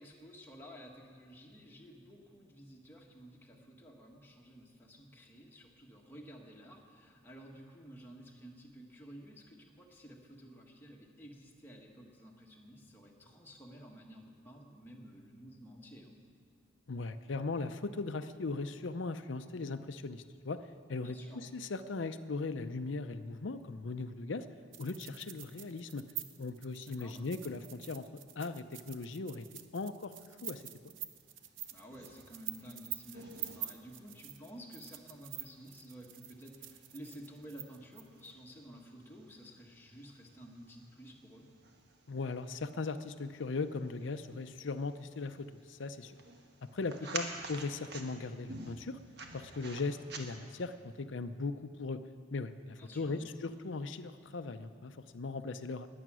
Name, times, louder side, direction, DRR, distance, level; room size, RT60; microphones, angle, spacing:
voice 1, 0.0-16.1 21.0-21.5 26.8-27.2 31.7-41.5 47.2-47.3 52.8-53.3, equal, 10° left, -2 dB, 1.5 m, -52 dB
voice 2, 16.9-20.6 20.9-24.4 24.8-26.0 26.4-28.1 28.4-29.4 29.7-30.1 30.4-30.6 42.1-46.1 46.7-49.0 49.3-50.7 51.0-52.0 52.3-55.9, left 3 dB, 70° left, 10 dB, 0.6 m, -38 dB
sound 1, 24.7-38.3, right 12 dB, 75° right, 0.8 m, -46 dB
sound 2, 31.3-50.7, right 3 dB, 55° right, 1.3 m, -51 dB
20.5 x 8.7 x 6.2 m, 2.1 s
head